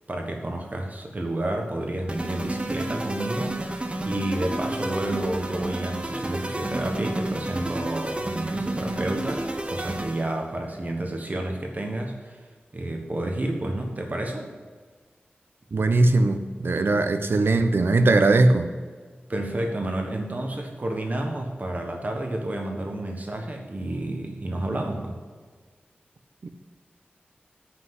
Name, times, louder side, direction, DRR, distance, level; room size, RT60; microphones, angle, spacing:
voice 1, 0.1-3.6 4.0-12.4 12.7-14.5 19.3-25.2, right 1 dB, 45° right, 2 dB, 1.4 m, -30 dB
sound 1, 2.1-10.4, right 1 dB, 30° right, 1.0 m, -31 dB
voice 2, 15.7-18.7 26.4-26.5, right 2 dB, 75° right, 8 dB, 0.8 m, -20 dB
8.3 x 5.9 x 7.7 m, 1.5 s
wide cardioid pair, 70°, 4 cm